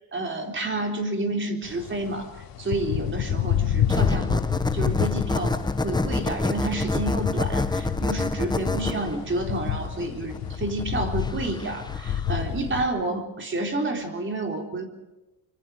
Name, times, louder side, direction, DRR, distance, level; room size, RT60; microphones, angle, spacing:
voice 1, 0.0-2.3 2.6-14.9, right 2 dB, 30° right, 4 dB, 3.9 m, -30 dB
sound 1, 1.6-12.9, left 10 dB, 75° left, 2.8 m, -30 dB
sound 2, 3.9-12.4, left 3 dB, 10° left, 1.0 m, -28 dB
25.0 x 25.0 x 5.0 m, 1.0 s
cardioid pair, 120°, 36 cm